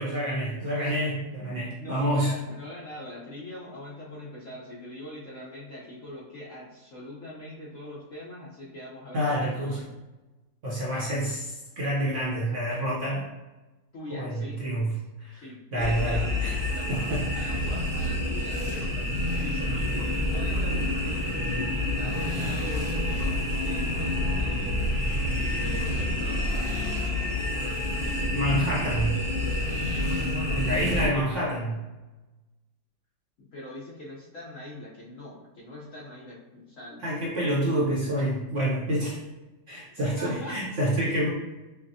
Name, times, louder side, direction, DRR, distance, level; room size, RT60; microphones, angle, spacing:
voice 1, 0.0-2.3 9.1-9.8 10.6-13.3 14.1-15.4 15.7-16.6 16.9-17.6 28.3-29.2 30.5-31.7 37.0-39.2 39.7-41.3, right 1 dB, 55° right, -6 dB, 0.9 m, -28 dB
voice 2, 1.4-9.9 13.9-14.7 15.3-18.9 19.4-19.8 20.3-24.9 25.5-26.8 27.4-28.3 29.7-31.6 33.5-37.0 38.1-38.3 40.2-40.6, left 1 dB, 60° left, -6 dB, 0.9 m, -42 dB
sound 1, 15.8-31.1, left 1 dB, 5° right, 0.8 m, -28 dB
5.8 x 2.0 x 2.7 m, 1.1 s
omnidirectional pair, 2.0 m